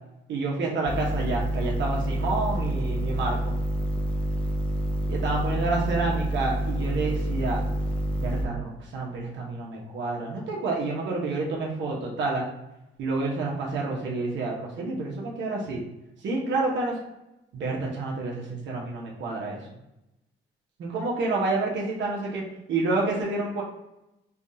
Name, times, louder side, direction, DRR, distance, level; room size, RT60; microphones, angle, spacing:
voice 1, 0.3-3.5 5.1-7.6 8.2-12.5 13.0-15.8 16.2-17.0 17.5-19.6 20.8-22.4 22.7-23.6, right 3 dB, 65° right, -2 dB, 0.8 m, -29 dB
sound 1, 0.9-8.4, equal, 5° left, 0.5 m, -28 dB
3.4 x 2.3 x 2.6 m, 0.90 s
cardioid pair, 90°, 20 cm